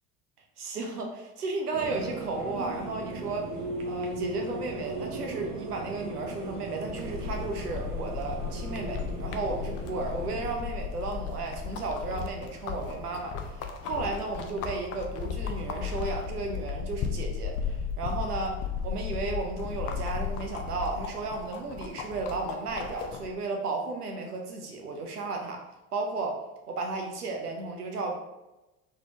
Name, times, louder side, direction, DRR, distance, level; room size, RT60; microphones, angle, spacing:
voice 1, 0.6-3.5 3.8-25.6 25.9-26.4 26.7-28.1, right 3 dB, 80° right, 2 dB, 0.8 m, -34 dB
sound 1, 1.7-10.5, right 2 dB, 45° right, 0.8 m, -37 dB
sound 2, 6.9-23.3, left 7 dB, 35° left, 0.5 m, -35 dB
4.0 x 3.1 x 2.8 m, 1.0 s
figure-of-eight pair, 65°, 45 cm